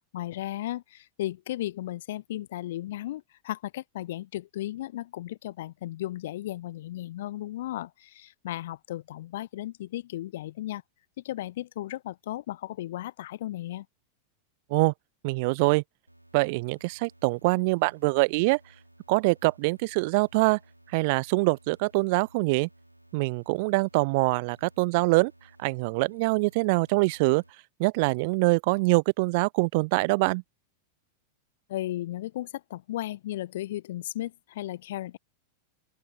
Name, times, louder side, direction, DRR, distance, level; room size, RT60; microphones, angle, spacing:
voice 1, 0.1-10.8 11.2-13.9 31.7-35.2, left 14 dB, 55° left, 0.7 m, -35 dB
voice 2, 15.2-15.8 16.3-18.6 19.1-20.6 20.9-22.7 23.1-25.3 25.6-27.4 27.8-30.4, right 27 dB, 50° right, 0.3 m, -24 dB
sound 1, 16.1-27.5, right 1 dB, 85° right, 4.9 m, -58 dB
open air
figure-of-eight pair, 90°, 0 cm